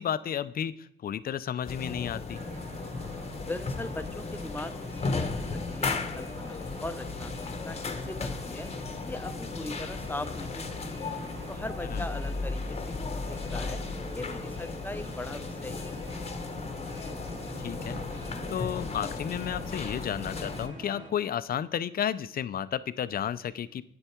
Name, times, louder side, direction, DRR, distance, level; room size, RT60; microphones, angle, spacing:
voice 1, 0.0-2.4 11.9-12.1 17.6-18.2 18.5-23.8, left 9 dB, 50° left, 15 dB, 0.5 m, -32 dB
sound 1, 1.6-20.7, left 4 dB, 30° left, 1.0 m, -35 dB
sound 2, 2.3-21.1, right 1 dB, 40° right, 2.1 m, -45 dB
voice 2, 3.5-8.7 9.0-11.1 11.5-13.2 13.5-13.8 14.1-16.1, left 2 dB, 10° left, 10 dB, 0.7 m, -40 dB
8.9 x 8.0 x 4.5 m, 0.74 s
cardioid pair, 90°, 20 cm